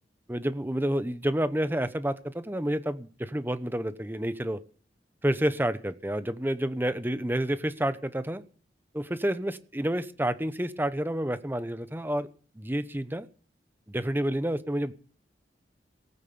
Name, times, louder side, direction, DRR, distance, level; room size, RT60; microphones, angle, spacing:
voice 1, 0.3-4.6 5.2-8.4 8.9-12.3 12.6-13.3 13.9-14.9, right 1 dB, 10° right, 13 dB, 0.9 m, -29 dB
18.5 x 9.1 x 6.9 m, 0.42 s
head